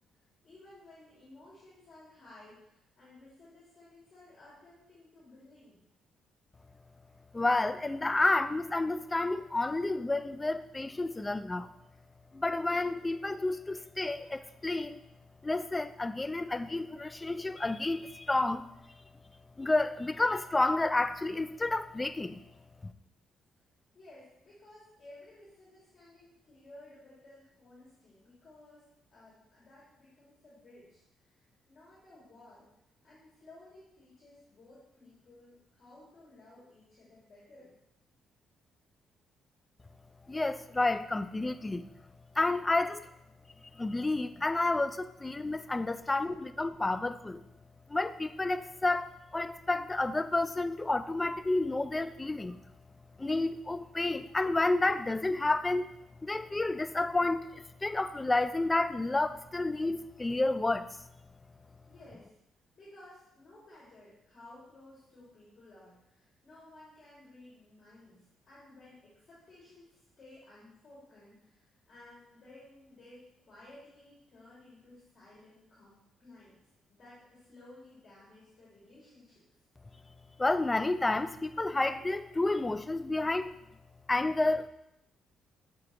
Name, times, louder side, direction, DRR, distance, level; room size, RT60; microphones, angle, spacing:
voice 1, 0.4-5.8 23.9-31.4 31.7-32.7 33.0-37.7 61.9-62.3 62.8-76.6 76.9-79.5, left 2 dB, 45° left, -8 dB, 2.3 m, -56 dB
voice 2, 7.3-11.7 12.3-15.0 15.4-18.7 19.6-22.4 22.8-22.9 40.3-41.9 42.4-43.0 43.8-47.4 47.9-52.6 53.2-55.9 56.2-61.0 80.4-83.5 84.1-84.7, left 2 dB, 20° left, 12 dB, 0.3 m, -30 dB
7.2 x 4.9 x 2.9 m, 0.81 s
cardioid pair, 90°, 0 cm